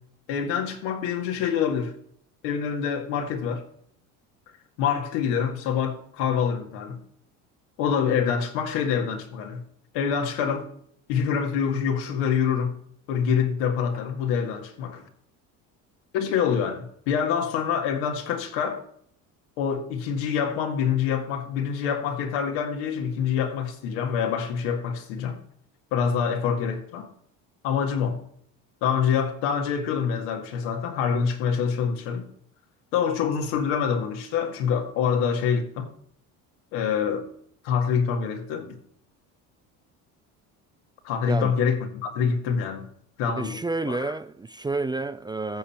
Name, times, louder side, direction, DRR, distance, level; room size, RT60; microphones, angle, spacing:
voice 1, 0.3-2.0 2.4-3.6 4.8-7.0 7.8-9.6 9.9-10.7 11.1-12.7 13.1-15.1 16.1-18.8 19.6-25.4 25.9-27.1 27.6-28.2 28.8-32.3 32.9-35.9 36.7-37.3 37.6-38.8 41.0-42.9 43.2-43.6 43.9-44.1, left 7 dB, 85° left, 2.0 m, -26 dB
voice 2, 43.4-45.6, right 3 dB, 10° right, 0.4 m, -30 dB
13.0 x 7.2 x 4.4 m
supercardioid pair, 95°, 37 cm